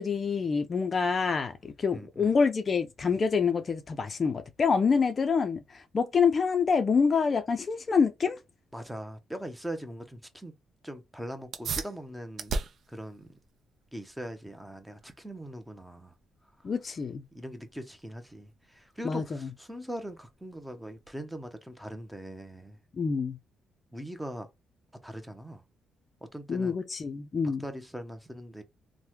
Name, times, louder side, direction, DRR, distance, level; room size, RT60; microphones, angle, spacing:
voice 1, 0.0-8.4 16.6-17.2 19.0-19.5 23.0-23.4 26.5-27.6, left 5 dB, 40° left, 0.4 m, -26 dB
voice 2, 1.9-2.3 8.7-10.5 10.8-12.6 12.9-13.3 13.9-16.1 17.3-22.8 23.9-24.5 25.0-25.6 26.3-26.7 27.6-28.6, equal, 5° right, 0.6 m, -41 dB
sound 1, 11.4-21.5, right 4 dB, 60° right, 0.5 m, -41 dB
3.2 x 2.1 x 2.9 m
cardioid pair, 90°, 0 cm